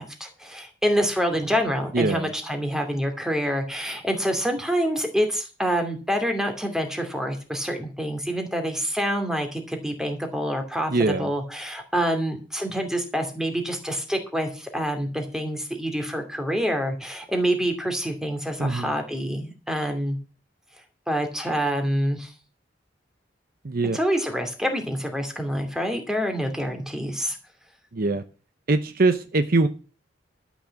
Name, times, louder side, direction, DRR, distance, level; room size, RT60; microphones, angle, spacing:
voice 1, 0.0-20.2 21.1-22.3 23.9-27.4, equal, 5° right, 5 dB, 2.5 m, -27 dB
voice 2, 1.9-2.3 10.9-11.3 18.6-18.9 23.6-24.0 27.9-28.2 28.7-29.7, right 3 dB, 55° right, 10 dB, 0.8 m, -22 dB
12.5 x 6.2 x 7.6 m, 0.36 s
head